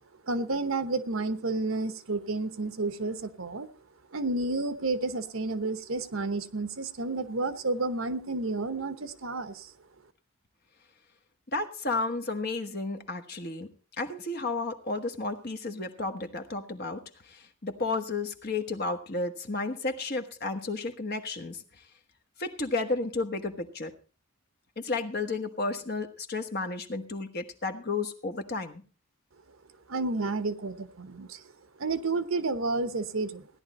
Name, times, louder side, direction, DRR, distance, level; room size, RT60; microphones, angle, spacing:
voice 1, 0.3-3.7 4.1-9.7 29.9-31.4 31.8-33.5, right 3 dB, 70° right, 11 dB, 1.0 m, -31 dB
voice 2, 11.5-13.7 14.0-21.6 22.4-23.9 24.8-28.8, left 3 dB, 45° left, 6 dB, 1.3 m, -32 dB
16.5 x 10.5 x 4.2 m, 0.36 s
head